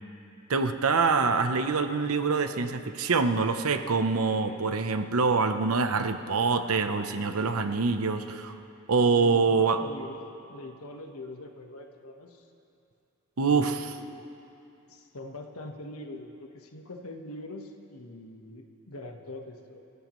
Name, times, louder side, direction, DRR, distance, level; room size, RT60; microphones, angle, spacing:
voice 1, 0.5-8.5 8.9-9.8 13.4-13.9, right 4 dB, 85° right, 8 dB, 0.8 m, -25 dB
voice 2, 9.0-12.4 13.4-14.2 14.9-19.8, left 2 dB, 90° left, 3 dB, 1.3 m, -43 dB
27.0 x 15.0 x 3.1 m, 2.8 s
head